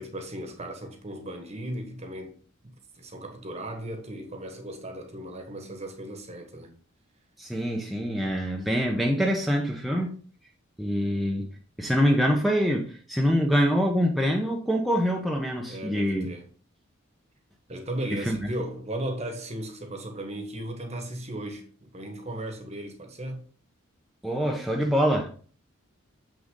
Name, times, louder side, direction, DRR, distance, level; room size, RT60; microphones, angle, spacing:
voice 1, 0.0-6.7 15.7-16.5 17.7-23.5, right 1 dB, 30° right, 1.4 m, -36 dB
voice 2, 7.4-10.2 10.8-11.5 11.8-16.3 18.3-18.4 24.2-25.3, equal, ahead, 0.9 m, -25 dB
6.9 x 6.3 x 3.8 m
head